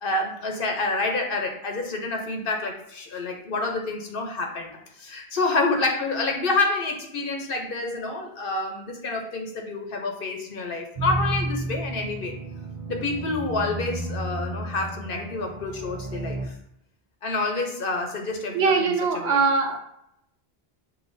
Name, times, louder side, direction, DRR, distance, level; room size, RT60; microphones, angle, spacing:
voice 1, 0.0-4.7 5.0-12.3 12.9-16.5 17.2-18.8 19.1-19.4, left 3 dB, 60° left, 2 dB, 0.9 m, -28 dB
sound 1, 11.0-16.5, right 2 dB, 40° right, 0.6 m, -32 dB
voice 2, 18.5-19.8, right 4 dB, 75° right, 4 dB, 0.9 m, -22 dB
6.7 x 2.8 x 2.6 m, 0.76 s
omnidirectional pair, 1.1 m